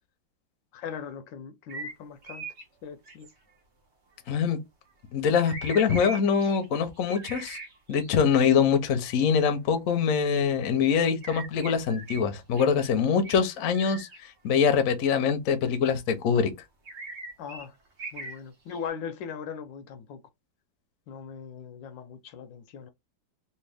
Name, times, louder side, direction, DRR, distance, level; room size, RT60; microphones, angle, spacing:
voice 1, 0.7-2.5 2.8-3.3 17.4-17.7 18.1-20.2 21.1-22.9, left 7 dB, 75° left, 1.2 m, -39 dB
sound 1, 1.7-2.0 2.2-2.6 3.0-3.3 5.5-8.4 11.2-12.2 12.5-12.7 13.1-14.2 14.7-14.8 16.9-18.4 18.7-18.9, right 3 dB, 50° right, 0.9 m, -40 dB
voice 2, 4.3-4.6 5.1-7.6 7.9-14.1 14.4-16.5, left 6 dB, 60° left, 0.9 m, -24 dB
3.4 x 2.6 x 3.4 m
omnidirectional pair, 2.1 m